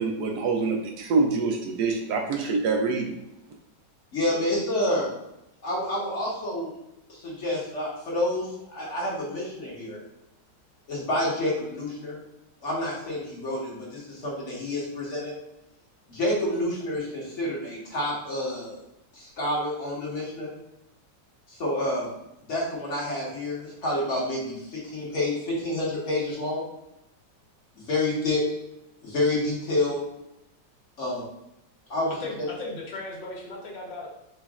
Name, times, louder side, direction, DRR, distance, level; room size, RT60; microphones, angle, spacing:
voice 1, 0.0-3.1, right 4 dB, 70° right, 2 dB, 1.1 m, -25 dB
voice 2, 4.1-5.1 5.6-6.7 7.1-10.0 10.9-12.2 12.6-15.3 16.1-18.8 19.1-20.5 21.5-22.1 22.4-26.6 27.7-28.4 29.0-30.0 31.0-31.3 31.9-32.1, left 1 dB, 45° left, -5 dB, 1.6 m, -28 dB
voice 3, 32.2-34.1, left 2 dB, 85° left, -2 dB, 1.8 m, -36 dB
5.1 x 2.5 x 3.5 m, 0.87 s
omnidirectional pair, 1.9 m